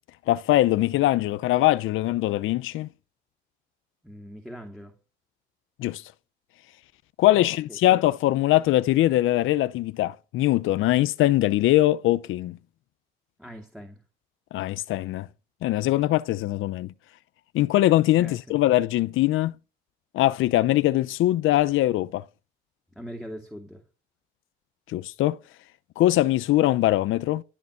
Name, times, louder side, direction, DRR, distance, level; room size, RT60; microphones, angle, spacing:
voice 1, 0.3-2.9 5.8-6.0 7.2-12.6 14.5-15.3 15.6-16.9 17.5-19.5 20.1-22.2 24.9-25.4 26.0-27.4, left 15 dB, 85° left, 0.7 m, -22 dB
voice 2, 4.0-5.0 7.3-7.8 13.4-14.0 18.2-18.6 22.9-23.8, equal, ahead, 2.5 m, -41 dB
13.0 x 6.8 x 8.4 m
cardioid pair, 90°, 20 cm